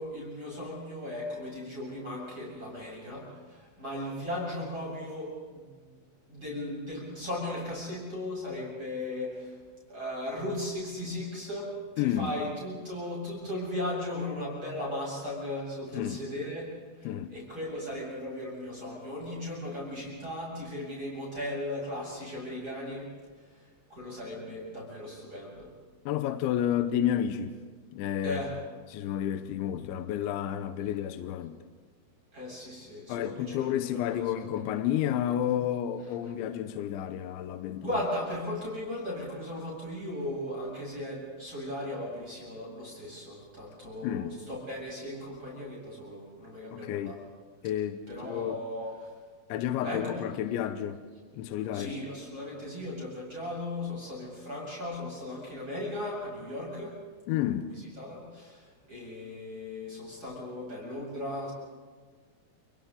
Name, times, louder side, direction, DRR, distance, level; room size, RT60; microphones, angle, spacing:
voice 1, 0.0-5.6 6.3-9.6 9.9-16.7 17.0-23.1 23.9-25.7 28.2-28.5 32.3-33.7 34.1-34.5 37.8-47.2 48.1-48.9 49.8-50.2 51.7-57.0 58.0-61.5, left 1 dB, 25° right, 7.6 m, -37 dB
voice 2, 12.0-12.4 15.9-16.2 17.0-17.3 26.1-27.6 27.9-28.4 28.9-31.6 33.1-37.9 44.0-44.4 46.7-47.1 47.6-48.6 49.5-51.0 51.3-51.9 57.3-57.7, left 11 dB, 80° left, 2.9 m, -31 dB
29.5 x 29.5 x 3.9 m
omnidirectional pair, 5.9 m